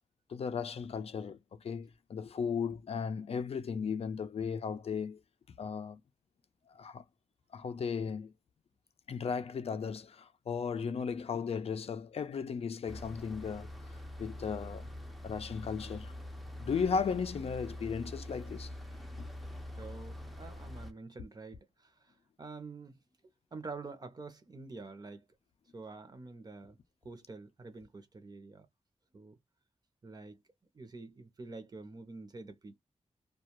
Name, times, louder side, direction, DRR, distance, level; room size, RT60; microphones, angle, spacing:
voice 1, 0.3-5.2 5.6-6.0 6.8-7.0 7.5-8.3 9.1-13.7 14.2-14.9 15.2-16.1 16.6-18.7 19.2-19.3, left 6 dB, 65° left, 0.4 m, -36 dB
sound 1, 12.9-20.9, left 1 dB, ahead, 0.5 m, -44 dB
voice 2, 19.8-23.0 23.5-25.2 25.7-26.8 27.0-28.7 29.1-29.4 30.0-30.4 30.7-32.8, right 3 dB, 35° right, 0.7 m, -47 dB
2.3 x 2.2 x 2.9 m
wide cardioid pair, 135°, 11 cm